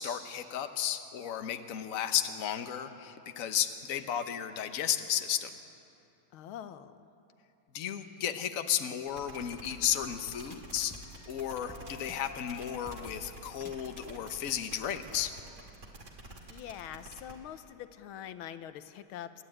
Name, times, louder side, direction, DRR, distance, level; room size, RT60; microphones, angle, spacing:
voice 1, 0.0-5.5 7.7-10.9 11.3-15.3, left 10 dB, 50° left, 8 dB, 1.2 m, -33 dB
voice 2, 6.3-7.1 16.5-19.4, left 10 dB, 85° left, 11 dB, 1.6 m, -44 dB
sound 1, 9.1-17.3, right 2 dB, 35° right, 2.4 m, -49 dB
sound 2, 9.7-15.6, left 1 dB, 15° left, 0.8 m, -51 dB
30.0 x 11.5 x 8.8 m, 2.7 s
omnidirectional pair, 2.2 m